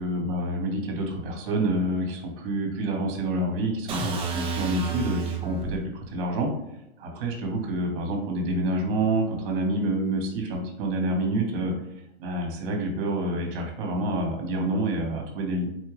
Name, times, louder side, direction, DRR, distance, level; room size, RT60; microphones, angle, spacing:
voice 1, 0.0-6.5 7.0-11.7 12.2-15.7, right 1 dB, 55° right, 2 dB, 1.5 m, -27 dB
sound 1, 3.9-5.8, right 5 dB, 15° right, 0.5 m, -31 dB
4.4 x 2.8 x 3.2 m, 0.85 s
hypercardioid pair, 135°, 33 cm